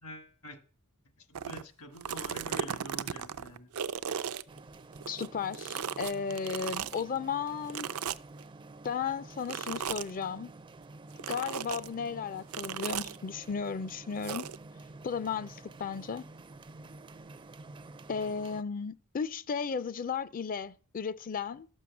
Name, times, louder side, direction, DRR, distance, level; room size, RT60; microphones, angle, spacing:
voice 1, 0.0-0.6 1.2-3.7, left 1 dB, 75° left, 1.6 m, -46 dB
sound 1, 1.3-1.6 2.0-5.3 5.5-7.0 7.7-8.4 9.5-10.1 11.2-11.9 12.5-13.2 14.2-14.6, right 8 dB, 75° right, 0.5 m, -36 dB
sound 2, 4.5-18.6, right 2 dB, 20° right, 0.4 m, -50 dB
voice 2, 5.1-7.9 8.8-10.5 11.3-14.4 15.0-16.2 18.1-21.7, left 6 dB, 40° left, 0.4 m, -35 dB
12.5 x 6.2 x 7.1 m
head